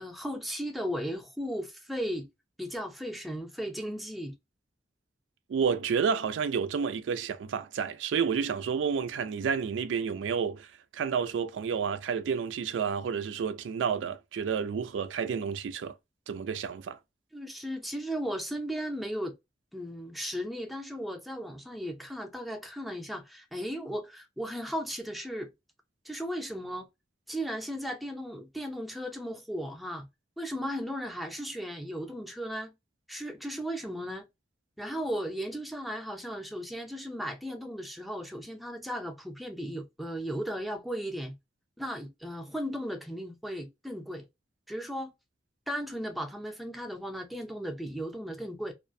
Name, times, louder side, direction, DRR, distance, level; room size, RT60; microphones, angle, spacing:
voice 1, 0.0-2.3 2.6-4.4 17.3-19.4 19.7-25.5 26.1-26.9 27.3-30.1 30.4-32.7 33.1-34.3 34.8-41.3 41.8-44.3 44.7-45.1 45.7-48.7, equal, ahead, 0.4 m, -36 dB
voice 2, 5.5-10.7 10.9-15.9 16.3-17.0, right 6 dB, 85° right, 0.3 m, -30 dB
2.4 x 2.1 x 2.5 m
head